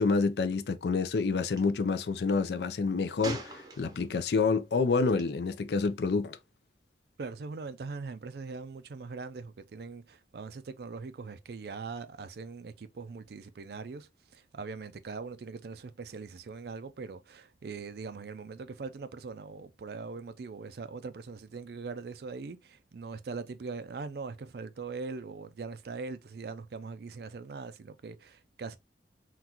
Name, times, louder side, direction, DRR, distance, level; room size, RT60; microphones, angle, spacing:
voice 1, 0.0-6.4, left 4 dB, 65° left, 0.4 m, -28 dB
Gunshot gunfire, 1.5-1.6 3.2-4.2 5.1-5.3, right 2 dB, 20° right, 0.6 m, -40 dB
voice 2, 7.2-28.8, right 4 dB, 60° right, 0.4 m, -41 dB
3.8 x 2.3 x 2.8 m
head